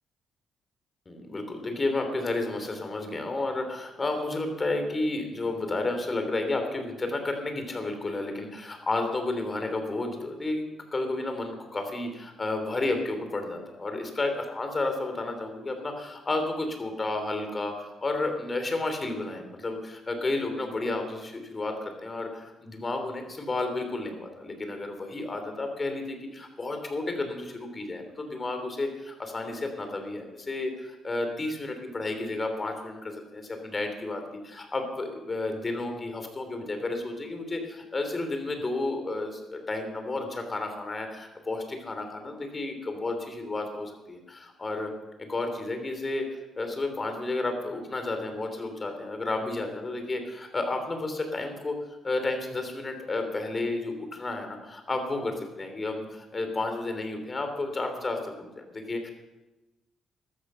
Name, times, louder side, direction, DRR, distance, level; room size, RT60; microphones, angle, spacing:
voice 1, 1.1-44.9 45.2-46.3 46.6-51.8 52.0-59.1, left 2 dB, 30° left, 6 dB, 3.3 m, -32 dB
14.5 x 13.0 x 5.7 m, 1.0 s
cardioid pair, 90°, 0 cm